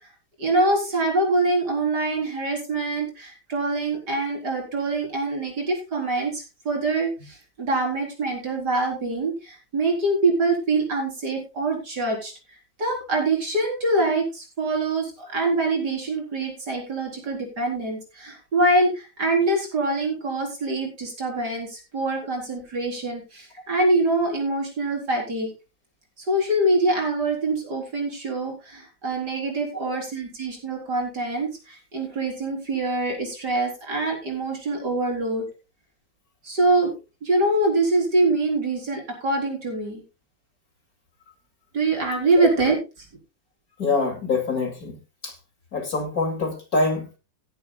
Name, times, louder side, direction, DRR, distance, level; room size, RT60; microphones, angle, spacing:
voice 1, 0.4-12.3 12.8-25.5 26.2-35.5 36.4-36.9 37.2-40.0 41.7-42.8, right 2 dB, 55° right, 1 dB, 4.7 m, -24 dB
voice 2, 43.8-45.0 45.2-45.3 45.7-47.2, left 3 dB, 50° left, 4 dB, 3.0 m, -25 dB
17.0 x 11.0 x 2.3 m, 0.28 s
omnidirectional pair, 2.1 m